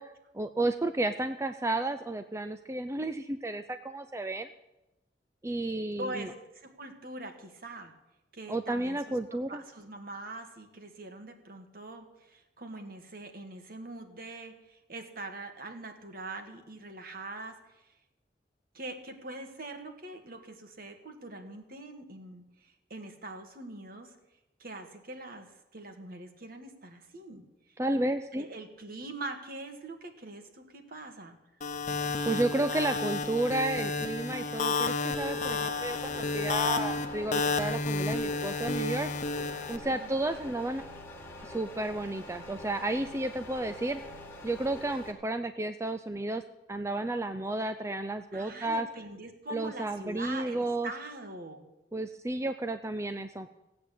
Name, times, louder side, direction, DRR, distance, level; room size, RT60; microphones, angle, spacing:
voice 1, 0.0-4.5 5.4-6.3 8.5-9.6 27.8-28.5 32.3-39.1 39.7-40.8 41.4-44.0 44.4-46.4 46.7-48.9 49.5-50.9 51.9-53.5, right 2 dB, 15° right, 9 dB, 0.5 m, -32 dB
voice 2, 6.0-7.9 8.3-9.1 9.5-17.9 18.7-24.1 24.6-25.5 25.7-27.8 28.3-31.4 39.9-40.2 48.3-51.6, right 2 dB, 55° right, 5 dB, 2.0 m, -43 dB
sound 1, 31.6-39.8, left 3 dB, 45° left, 1.0 m, -31 dB
sound 2, 35.1-45.1, left 1 dB, 15° left, 2.1 m, -45 dB
16.5 x 8.7 x 8.2 m, 0.94 s
head